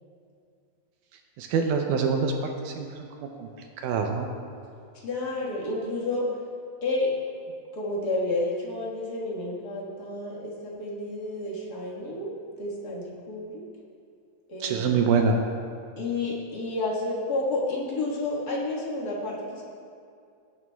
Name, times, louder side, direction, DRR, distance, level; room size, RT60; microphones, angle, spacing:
voice 1, 1.4-2.3 2.6-3.5 3.8-4.3 14.6-15.4, right 5 dB, 80° right, 3 dB, 2.0 m, -25 dB
voice 2, 4.9-6.3 6.8-7.1 7.7-13.6 14.5-15.0 16.0-19.6, left 2 dB, 45° left, -5 dB, 1.3 m, -30 dB
17.0 x 9.3 x 2.3 m, 2.4 s
omnidirectional pair, 4.0 m